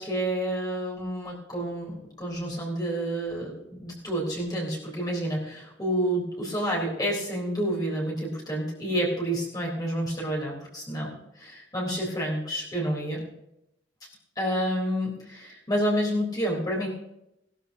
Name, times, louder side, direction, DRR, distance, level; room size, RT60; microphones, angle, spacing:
voice 1, 0.0-13.2 14.4-16.9, equal, 20° left, -3 dB, 3.7 m, -29 dB
19.0 x 13.0 x 2.8 m, 0.85 s
head